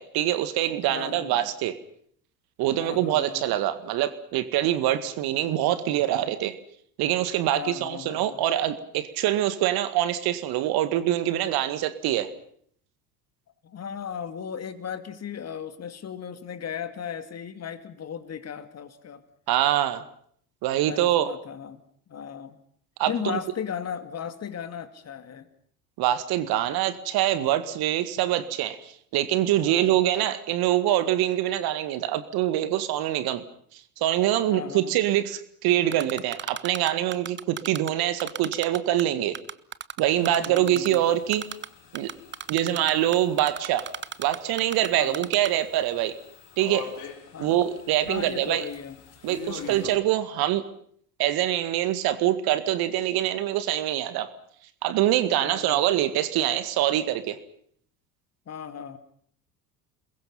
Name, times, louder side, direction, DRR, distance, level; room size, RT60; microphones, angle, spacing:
voice 1, 0.0-1.8 2.6-6.5 7.0-12.3 19.5-20.0 20.6-21.3 23.0-23.4 26.0-33.4 34.0-39.4 40.0-41.5 41.9-42.1 42.5-43.9 44.2-46.1 46.6-46.9 47.4-48.6 49.2-50.6 51.2-54.3 54.8-57.4, right 12 dB, 50° right, 13 dB, 2.0 m, -24 dB
voice 2, 0.9-1.5 2.8-3.5 7.5-8.5 13.6-19.2 20.8-21.8 22.1-22.6 23.1-25.5 29.6-30.0 34.5-35.0 40.2-41.0 42.6-43.0 44.9-45.3 47.3-47.5 48.1-49.0 49.6-50.0 55.4-56.0 58.5-59.0, left 8 dB, 35° left, 11 dB, 2.5 m, -36 dB
Typing, 35.9-37.9 38.2-39.0 39.3-41.0 41.3-41.7 41.9-44.9 45.1-45.5, right 8 dB, 25° right, 1.0 m, -34 dB
sound 1, 40.0-50.0, left 7 dB, 50° left, 4.8 m, -45 dB
30.0 x 21.5 x 5.7 m, 0.63 s
figure-of-eight pair, 65°, 46 cm